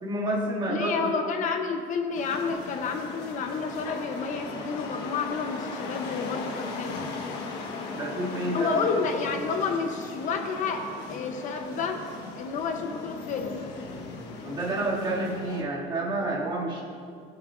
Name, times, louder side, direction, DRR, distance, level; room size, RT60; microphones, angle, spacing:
voice 1, 0.0-1.2 7.9-9.0 14.4-16.8, right 1 dB, 25° right, -5 dB, 2.3 m, -29 dB
voice 2, 0.7-7.0 8.5-12.1 12.4-13.6, left 5 dB, 50° left, 5 dB, 0.8 m, -30 dB
sound 1, 2.1-15.6, left 4 dB, 75° left, 1.3 m, -38 dB
19.0 x 8.0 x 2.5 m, 2.3 s
cardioid pair, 150°, 17 cm